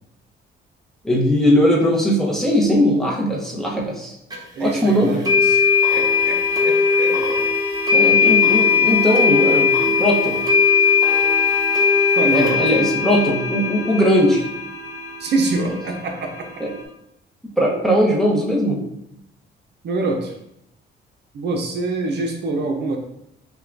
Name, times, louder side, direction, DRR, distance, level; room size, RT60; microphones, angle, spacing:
voice 1, 1.0-4.1 4.6-5.2 7.9-10.4 12.3-14.4 16.6-16.7 17.6-18.8, equal, ahead, -3 dB, 0.9 m, -19 dB
sound 1, 4.3-4.4 5.3-16.8, left 5 dB, 20° right, 1.0 m, -19 dB
voice 2, 4.6-5.6 5.9-7.4 12.2-12.6 15.2-16.5 19.8-20.3 21.3-23.0, right 3 dB, 60° right, 2 dB, 0.6 m, -25 dB
5.6 x 2.3 x 2.5 m, 0.79 s
cardioid pair, 90°, 20 cm